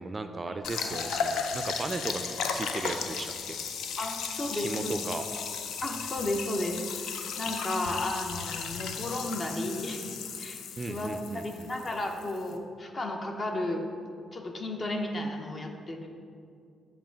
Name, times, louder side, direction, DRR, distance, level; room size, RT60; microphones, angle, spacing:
voice 1, 0.0-2.2 2.5-3.6 4.5-5.3 10.8-11.7, right 3 dB, 30° right, 8 dB, 0.3 m, -36 dB
sound 1, 0.6-12.6, left 6 dB, 80° left, 0.4 m, -35 dB
voice 2, 4.0-5.0 5.8-13.8 14.3-16.1, left 1 dB, 40° left, 3 dB, 0.7 m, -34 dB
7.5 x 2.5 x 5.1 m, 2.3 s
supercardioid pair, 55°, 0 cm